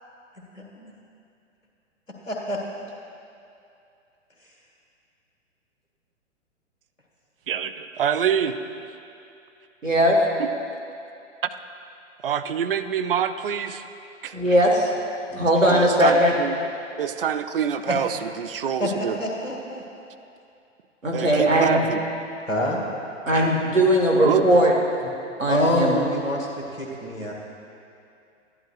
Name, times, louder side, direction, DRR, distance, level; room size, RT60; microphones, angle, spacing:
voice 1, 0.6-0.9 2.3-2.6 17.9-18.0 18.8-19.8 22.5-22.8 25.5-27.3, left 1 dB, 85° left, -2 dB, 1.8 m, -26 dB
voice 2, 7.5-8.8 10.4-10.5 12.2-13.8 14.2-14.3 15.7-16.6 16.9-19.2 21.1-22.0 24.2-24.4, right 8 dB, 50° right, 9 dB, 0.4 m, -26 dB
voice 3, 9.8-10.2 14.3-14.9 15.3-16.3 21.0-21.9 23.3-24.7 25.0-25.1 25.4-26.0, right 1 dB, 85° right, -1 dB, 1.7 m, -19 dB
12.0 x 11.0 x 2.4 m, 2.6 s
figure-of-eight pair, 115°, 38 cm